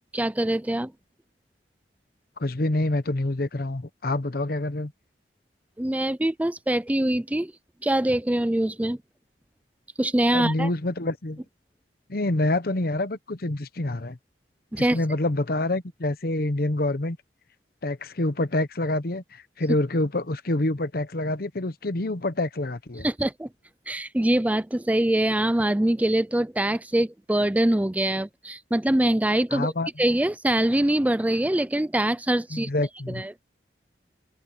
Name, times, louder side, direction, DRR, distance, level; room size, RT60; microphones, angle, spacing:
voice 1, 0.1-0.9 5.8-7.5 7.8-9.0 10.0-10.7 14.7-15.0 23.0-23.5 23.9-29.7 30.0-32.7 33.1-33.4, right 1 dB, 10° right, 0.4 m, -24 dB
voice 2, 2.4-4.9 10.3-11.4 12.1-14.2 14.8-17.2 17.8-23.1 29.5-29.9 32.5-33.2, left 2 dB, 55° left, 1.0 m, -27 dB
open air
head